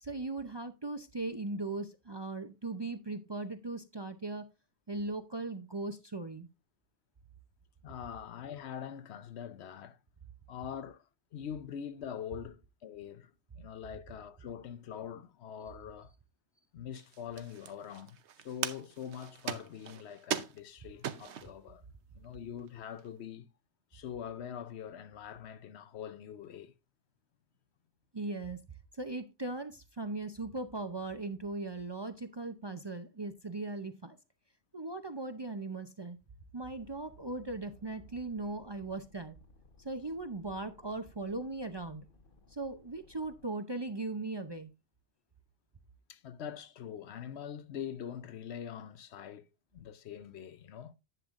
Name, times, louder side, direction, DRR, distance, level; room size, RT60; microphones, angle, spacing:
voice 1, 0.0-4.5 4.9-6.5 28.1-28.6 28.9-34.2 34.7-36.2 36.5-39.4 39.8-42.1 42.5-44.7, right 2 dB, 30° right, 0.5 m, -38 dB
voice 2, 7.8-10.0 10.5-16.1 16.7-21.9 22.1-23.5 23.9-26.7 46.1-49.5 49.7-50.9, left 8 dB, 75° left, 0.9 m, -44 dB
sound 1, 16.9-21.6 22.2-22.3 22.6-23.1, right 8 dB, 80° right, 1.1 m, -40 dB
sound 2, 36.7-43.5, left 3 dB, 50° left, 1.3 m, -62 dB
10.5 x 7.9 x 2.5 m
omnidirectional pair, 1.1 m